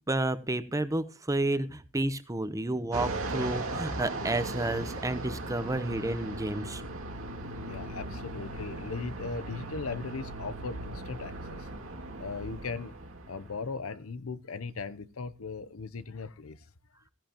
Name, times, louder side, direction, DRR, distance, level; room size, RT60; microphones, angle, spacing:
voice 1, 0.1-6.8, right 2 dB, 15° right, 0.8 m, -31 dB
Fixed-wing aircraft airplane, 2.9-13.8, right 2 dB, 75° right, 2.4 m, -38 dB
voice 2, 7.6-11.7 12.2-13.0 13.3-16.6, left 4 dB, 90° left, 0.8 m, -38 dB
15.0 x 10.5 x 2.9 m
head